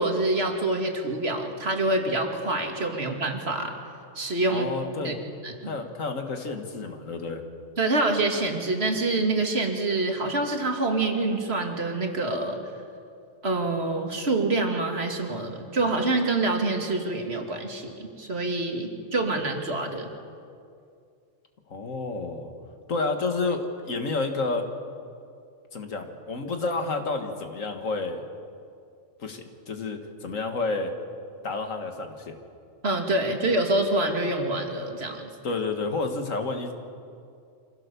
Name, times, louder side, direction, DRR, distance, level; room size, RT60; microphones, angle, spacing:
voice 1, 0.0-3.8 4.2-4.7 5.0-5.1 5.4-5.5 7.8-12.6 13.4-20.1 32.8-35.3, right 2 dB, 55° right, 3 dB, 2.3 m, -26 dB
voice 2, 4.5-5.2 5.6-7.4 21.7-22.5 22.9-24.6 25.7-28.3 29.2-30.9 31.4-32.4 35.4-36.7, left 3 dB, 90° left, 5 dB, 2.1 m, -30 dB
25.5 x 16.5 x 6.9 m, 2.4 s
omnidirectional pair, 1.3 m